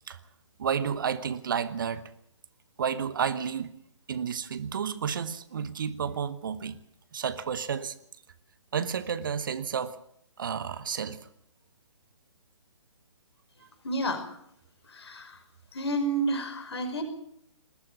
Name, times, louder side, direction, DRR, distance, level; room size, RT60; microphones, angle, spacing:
voice 1, 0.6-2.1 2.8-3.8 4.1-6.8 7.1-8.0 8.7-10.0 10.4-11.3, right 7 dB, 45° right, 1.1 m, -31 dB
voice 2, 13.8-14.2 14.9-15.4 15.7-17.0, right 1 dB, 55° left, 5.2 m, -30 dB
20.0 x 13.5 x 9.5 m
figure-of-eight pair, 135°, 16 cm